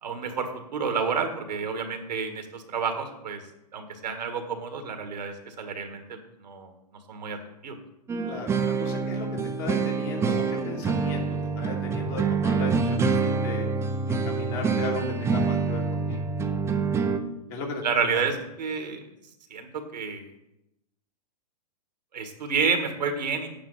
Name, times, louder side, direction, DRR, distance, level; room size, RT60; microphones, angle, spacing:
voice 1, 0.0-3.4 3.7-6.7 7.1-7.4 7.6-7.8 17.8-19.1 19.5-20.3 22.1-23.6, right 5 dB, 80° right, 6 dB, 1.7 m, -30 dB
sound 1, 8.1-17.2, right 5 dB, 15° right, 0.6 m, -26 dB
voice 2, 8.2-9.3 9.6-11.3 11.6-13.7 14.1-16.3 17.5-18.2, left 4 dB, 45° left, 0 dB, 2.5 m, -36 dB
8.9 x 8.7 x 4.1 m, 0.85 s
hypercardioid pair, 120°, 21 cm